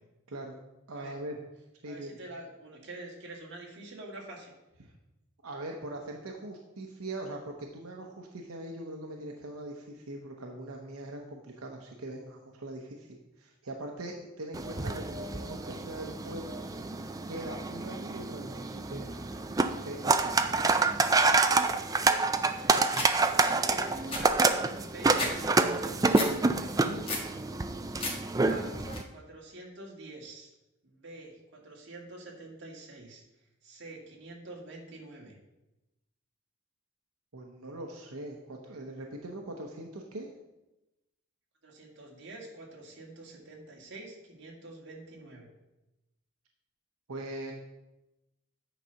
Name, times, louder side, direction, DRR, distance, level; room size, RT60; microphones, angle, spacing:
voice 1, 0.3-0.6 0.9-1.4 1.8-2.2 4.8-4.9 5.4-16.5 17.3-19.1 19.8-20.8 26.8-27.3 37.3-40.3 47.1-47.5, right 1 dB, 90° right, 1 dB, 0.9 m, -41 dB
voice 2, 1.9-4.5 22.5-22.9 23.4-26.8 28.4-28.9 29.1-30.5 30.8-35.4 41.6-45.5, right 2 dB, 55° right, -2 dB, 2.0 m, -46 dB
sound 1, 14.5-29.0, right 3 dB, 15° right, 0.3 m, -28 dB
sound 2, 22.9-23.1 23.6-23.7 23.9-25.3 25.7-26.3 26.7-27.3 27.7-28.2 28.5-29.0, left 2 dB, 25° left, 1.3 m, -34 dB
9.1 x 4.1 x 5.7 m, 0.96 s
head